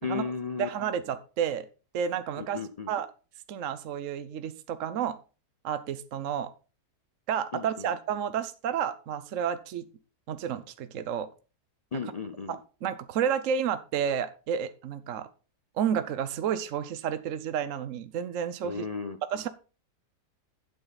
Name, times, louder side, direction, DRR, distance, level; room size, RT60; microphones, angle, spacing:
voice 1, 0.0-0.7 2.4-2.9 7.5-7.9 11.9-12.6 18.6-19.2, left 5 dB, 85° left, 9 dB, 0.3 m, -34 dB
voice 2, 0.6-1.7 1.9-2.6 2.9-3.1 3.5-5.2 5.6-6.5 7.3-9.8 10.3-11.3 12.5-15.3 15.8-18.8 19.3-19.5, right 8 dB, 60° right, 11 dB, 1.0 m, -31 dB
12.0 x 7.9 x 4.1 m, 0.34 s
omnidirectional pair, 1.7 m